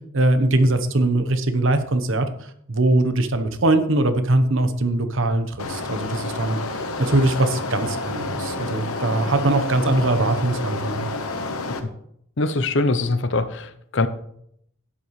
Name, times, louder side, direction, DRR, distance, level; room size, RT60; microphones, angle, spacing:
voice 1, 0.1-2.3 2.7-6.6 7.0-11.1, right 2 dB, 65° right, 9 dB, 1.0 m, -21 dB
sound 1, 5.6-11.8, left 3 dB, 85° left, 1.1 m, -29 dB
voice 2, 12.4-14.1, left 2 dB, 60° left, 11 dB, 0.7 m, -22 dB
12.5 x 10.0 x 3.2 m, 0.71 s
head